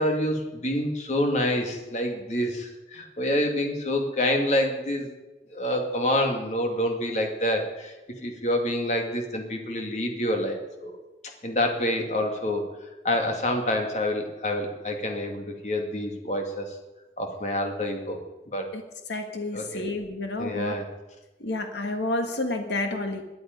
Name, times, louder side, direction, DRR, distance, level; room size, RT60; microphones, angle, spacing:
voice 1, 0.0-5.1 5.5-7.9 8.2-11.0 11.4-12.7 13.0-16.8 17.2-18.2 18.5-18.7 19.5-19.9 20.4-20.9, left 1 dB, 40° left, 3 dB, 2.3 m, -27 dB
voice 2, 19.1-20.8 21.4-23.2, left 2 dB, 80° left, 5 dB, 1.6 m, -30 dB
18.5 x 11.0 x 5.3 m, 1.1 s
head